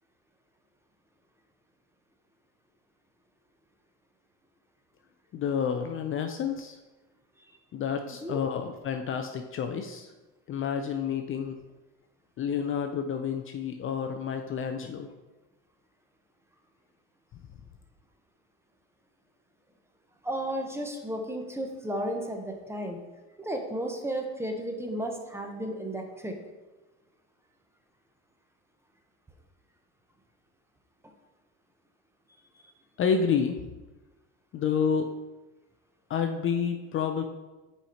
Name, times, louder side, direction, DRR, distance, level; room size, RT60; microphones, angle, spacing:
voice 1, 5.3-6.8 7.7-10.1 10.5-11.6 12.4-15.1 33.0-33.6 34.5-35.1 36.1-37.2, left 7 dB, 40° left, 6 dB, 0.5 m, -29 dB
voice 2, 8.0-8.4 20.2-23.0 23.4-26.4, right 1 dB, 10° right, 3 dB, 0.8 m, -33 dB
5.6 x 4.3 x 4.3 m, 1.2 s
supercardioid pair, 95°, 34 cm